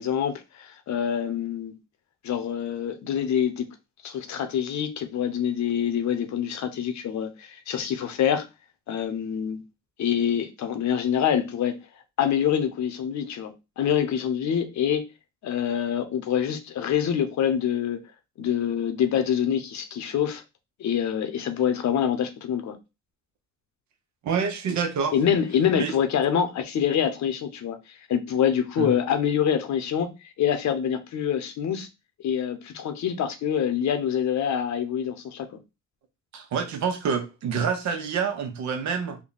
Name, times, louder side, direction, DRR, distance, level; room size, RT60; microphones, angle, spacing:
voice 1, 0.0-1.7 2.2-3.7 4.0-8.4 8.9-9.6 10.0-11.8 12.2-15.1 15.4-18.0 18.4-20.4 20.8-22.8 25.1-27.8 28.1-30.1 30.4-31.9 32.2-35.5, left 8 dB, 70° left, 0.9 m, -25 dB
voice 2, 24.2-25.1 25.8-25.9 28.8-28.9 36.3-39.2, right 6 dB, 70° right, 0.9 m, -27 dB
3.6 x 2.2 x 3.9 m
cardioid pair, 90°, 30 cm